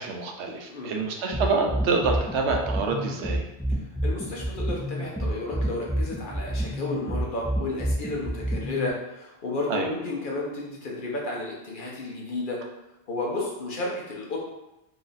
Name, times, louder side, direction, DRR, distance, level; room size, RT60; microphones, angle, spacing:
voice 1, 0.0-3.4 9.7-9.9, right 4 dB, 90° right, 2 dB, 0.9 m, -27 dB
sound 1, 1.3-8.9, right 1 dB, ahead, 0.4 m, -28 dB
voice 2, 4.0-12.6 13.1-14.4, left 2 dB, 55° left, -3 dB, 0.9 m, -32 dB
3.1 x 2.5 x 4.0 m, 0.93 s
omnidirectional pair, 1.1 m